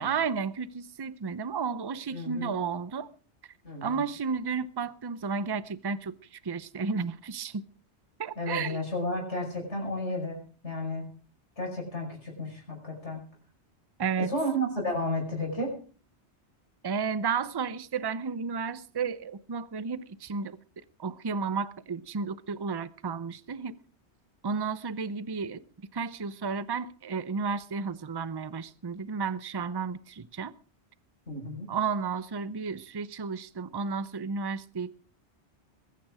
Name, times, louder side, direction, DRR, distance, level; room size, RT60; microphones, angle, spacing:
voice 1, 0.0-3.1 3.8-7.6 8.2-8.8 14.0-14.3 16.8-20.6 21.0-23.8 24.4-25.6 25.9-30.5 31.7-34.9, right 5 dB, 30° right, 0.6 m, -32 dB
voice 2, 2.1-2.6 3.6-4.0 8.4-11.1 11.6-13.2 14.2-15.7 31.3-31.7, left 1 dB, 85° left, 5.8 m, -32 dB
21.5 x 9.3 x 4.9 m
omnidirectional pair, 1.2 m